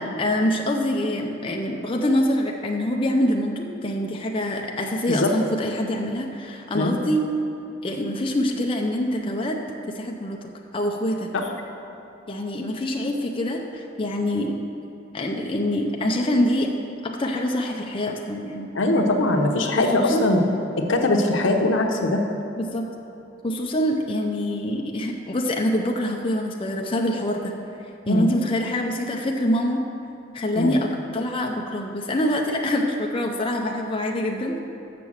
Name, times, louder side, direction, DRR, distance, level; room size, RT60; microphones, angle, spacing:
voice 1, 0.2-7.2 7.8-9.6 9.9-11.3 12.3-14.6 15.1-16.7 17.0-18.7 19.7-20.3 22.6-22.9 23.4-27.5 28.1-29.8 30.3-34.6, left 1 dB, 30° left, 1 dB, 0.5 m, -25 dB
voice 2, 18.7-20.4 20.9-22.2 28.1-28.3 30.5-30.8, left 2 dB, 75° left, 2 dB, 0.9 m, -21 dB
6.8 x 6.3 x 7.2 m, 2.8 s
head